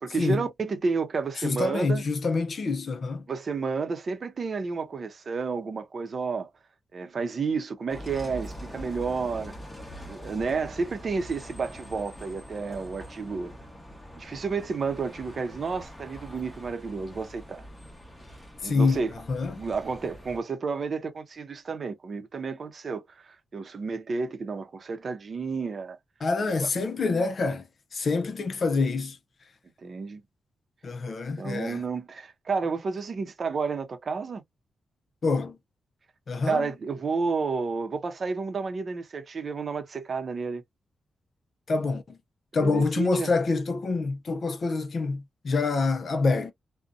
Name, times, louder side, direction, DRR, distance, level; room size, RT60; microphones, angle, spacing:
voice 1, 0.0-2.0 3.3-6.5 6.9-9.5 10.1-13.5 14.2-17.6 18.6-19.1 19.6-26.0 26.4-26.7 29.8-30.2 31.4-34.4 36.5-40.6 42.5-43.3, right 4 dB, 45° right, 0.7 m, -31 dB
voice 2, 1.4-3.2 18.6-19.0 19.3-19.6 26.2-27.6 27.9-29.2 30.8-31.8 35.2-35.6 36.3-36.7 41.7-42.2 42.5-46.5, left 3 dB, 45° left, 0.5 m, -26 dB
Bus, 7.9-20.4, equal, 15° left, 1.0 m, -44 dB
2.6 x 2.2 x 2.5 m
wide cardioid pair, 130°, 0 cm